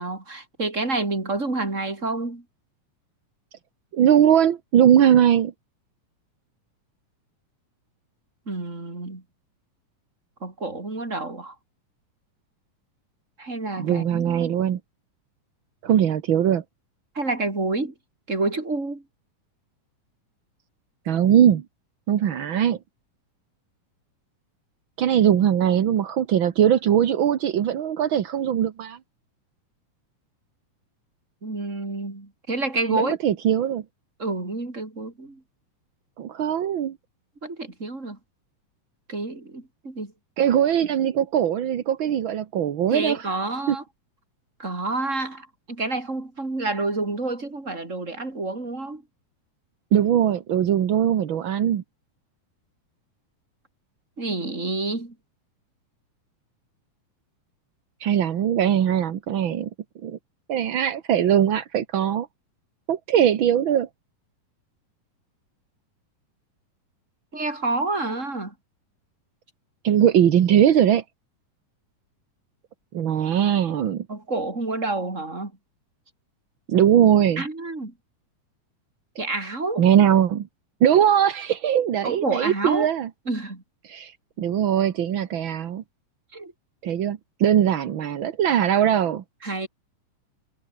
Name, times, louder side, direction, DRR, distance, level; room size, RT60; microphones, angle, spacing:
voice 1, 0.0-2.4 8.5-9.2 10.4-11.5 13.4-14.5 17.1-17.9 18.3-19.0 31.4-33.2 34.2-35.4 37.4-38.2 39.1-40.1 42.9-43.8 44.6-49.0 54.2-55.1 67.3-68.5 74.1-75.5 77.4-77.9 79.2-79.8 82.0-82.9 83.3-83.6 86.3-86.5 89.4-89.7, right 2 dB, 20° right, 4.8 m, -28 dB
voice 2, 3.9-5.5 13.8-14.8 15.8-16.6 21.0-21.6 22.1-22.8 25.0-29.0 32.9-33.8 36.2-37.0 40.4-43.2 43.7-43.8 49.9-51.8 58.0-59.7 60.0-60.2 60.5-62.3 62.9-63.9 69.8-71.0 72.9-74.1 76.7-77.4 79.8-80.5 80.8-83.1 83.9-85.8 86.8-89.2, right 9 dB, 55° right, 1.4 m, -20 dB
omnidirectional pair, 3.8 m